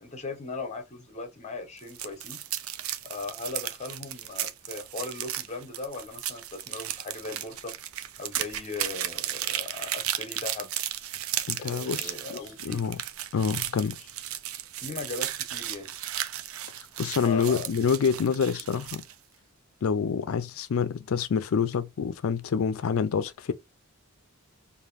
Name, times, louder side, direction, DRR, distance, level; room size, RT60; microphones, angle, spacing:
voice 1, 0.0-2.4 3.0-7.7 8.2-10.7 11.6-12.8 14.8-15.9 17.2-17.7, left 3 dB, 30° left, 0.8 m, -38 dB
sound 1, 1.8-19.1, right 11 dB, 70° right, 0.5 m, -35 dB
voice 2, 11.5-13.0 13.3-14.1 17.0-19.0 19.8-23.5, left 6 dB, 70° left, 0.4 m, -27 dB
4.9 x 2.6 x 2.5 m
head